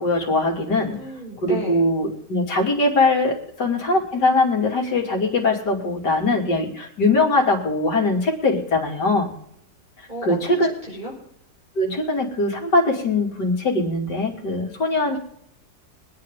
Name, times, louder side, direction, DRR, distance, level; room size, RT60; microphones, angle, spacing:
voice 1, 0.0-1.0 1.4-9.3 10.2-10.7 11.8-15.2, left 2 dB, 70° left, 1 dB, 3.3 m, -21 dB
voice 2, 0.9-1.8 10.1-11.1, left 1 dB, 25° right, -2 dB, 6.5 m, -33 dB
24.0 x 9.7 x 3.7 m, 0.71 s
omnidirectional pair, 1.9 m